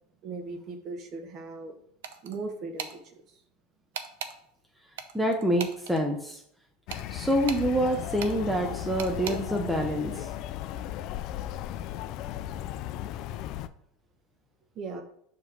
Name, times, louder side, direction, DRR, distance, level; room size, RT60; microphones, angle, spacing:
voice 1, 0.2-1.7 2.2-2.9 14.8-15.0, right 3 dB, 35° right, 6 dB, 1.0 m, -37 dB
sound 1, 2.0-2.4 2.8-3.0 3.9-4.3 5.0-6.0 6.9-7.7 8.2-8.4 9.0-9.4, right 8 dB, 90° right, 0.7 m, -37 dB
voice 2, 5.1-6.4 7.1-10.1, equal, 5° right, 2 dB, 0.6 m, -26 dB
sound 2, 6.9-13.7, left 12 dB, 45° left, 0.3 m, -36 dB
7.0 x 3.0 x 6.0 m, 0.68 s
supercardioid pair, 150°, 0 cm